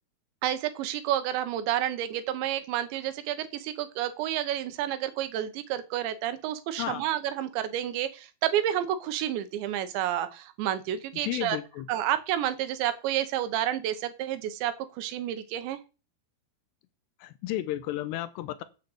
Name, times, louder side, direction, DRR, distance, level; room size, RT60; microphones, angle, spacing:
voice 1, 0.4-11.6 11.9-15.8, right 11 dB, 85° right, 10 dB, 3.4 m, -30 dB
voice 2, 11.2-11.9 17.2-18.6, left 14 dB, 80° left, 13 dB, 2.8 m, -33 dB
8.6 x 6.2 x 7.8 m, 0.32 s
omnidirectional pair, 5.0 m